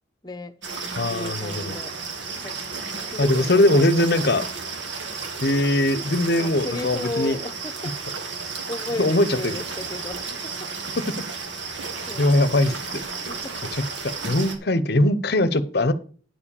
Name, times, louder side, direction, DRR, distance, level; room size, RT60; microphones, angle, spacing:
voice 1, 0.2-0.5 1.1-2.6 3.1-4.5 6.4-8.0 8.7-10.5 12.1-12.6 13.3-13.6, left 2 dB, 20° left, 0.9 m, -34 dB
sound 1, 0.6-14.6, right 4 dB, 75° right, 1.9 m, -33 dB
voice 2, 1.0-1.7 3.2-4.4 5.4-7.4 9.0-9.5 12.2-12.7 14.2-15.9, left 1 dB, 55° left, 0.8 m, -20 dB
10.5 x 4.9 x 7.0 m
head